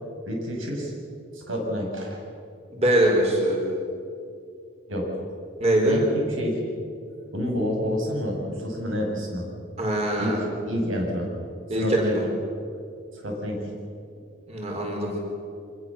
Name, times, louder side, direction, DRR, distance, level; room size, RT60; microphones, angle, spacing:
voice 1, 0.3-0.9 1.3-2.2 4.9-5.1 5.9-6.6 7.3-9.5 10.2-10.3 10.6-11.3 11.8-12.2 13.1-13.7, equal, 85° right, 0 dB, 6.2 m, -28 dB
voice 2, 2.7-3.6 5.6-6.0 9.8-10.4 11.7-12.2 14.5-15.1, right 1 dB, 30° right, -1 dB, 4.7 m, -22 dB
25.5 x 20.5 x 7.4 m, 2.4 s
head